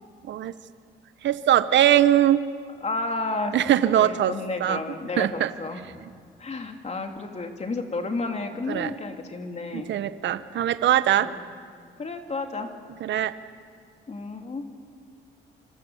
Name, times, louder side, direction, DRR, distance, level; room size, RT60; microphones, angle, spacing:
voice 1, 1.2-2.4 3.5-4.3 4.6-4.8 5.2-5.5 8.7-8.9 9.7-11.3 13.0-13.3, right 11 dB, 65° right, 13 dB, 0.9 m, -21 dB
voice 2, 2.8-3.5 4.0-5.9 6.4-9.9 11.1-11.4 12.0-12.7 14.1-14.6, left 3 dB, 35° left, 4 dB, 3.0 m, -31 dB
26.0 x 25.5 x 7.2 m, 2.1 s
cardioid pair, 90°, 20 cm